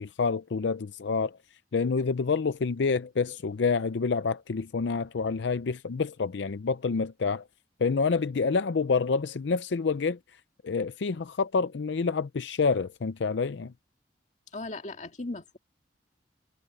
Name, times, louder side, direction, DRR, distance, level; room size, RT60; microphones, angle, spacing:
voice 1, 0.0-1.4 1.7-7.4 7.8-10.2 10.6-13.7, left 4 dB, 80° left, 0.5 m, -28 dB
voice 2, 14.5-15.6, left 2 dB, 40° left, 1.9 m, -37 dB
head